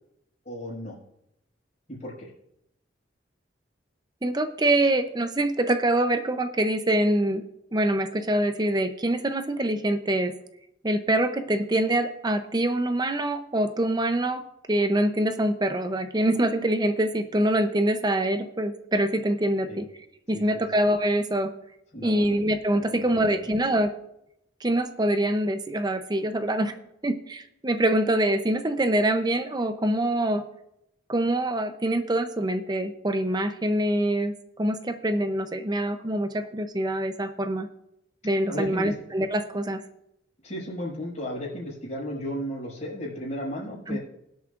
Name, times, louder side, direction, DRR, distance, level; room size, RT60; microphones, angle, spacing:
voice 1, 0.4-0.9 1.9-2.3 19.7-19.8 20.3-20.7 21.9-22.3 22.7-23.5 38.2-38.9 40.4-44.0, equal, 40° left, -11 dB, 5.4 m, -35 dB
voice 2, 4.2-7.4 7.7-10.3 10.8-14.4 14.7-19.9 20.3-21.5 22.0-23.9 24.6-26.7 27.0-30.4 31.1-34.3 34.6-37.7 38.2-39.8 43.9-44.0, right 1 dB, 20° right, 9 dB, 0.7 m, -25 dB
22.5 x 8.3 x 2.5 m, 0.80 s
head